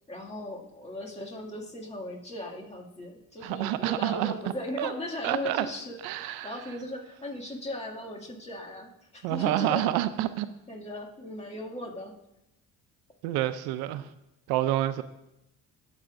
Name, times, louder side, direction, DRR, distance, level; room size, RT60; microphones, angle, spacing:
voice 1, 0.1-9.9 10.7-12.1, left 1 dB, 20° left, -2 dB, 2.2 m, -38 dB
voice 2, 3.4-4.3 4.8-4.9 5.2-5.7 6.0-6.5 9.2-10.5 13.2-14.0 14.5-15.0, right 14 dB, 90° right, 12 dB, 0.6 m, -28 dB
20.5 x 7.2 x 2.6 m, 0.87 s
supercardioid pair, 80°, 36 cm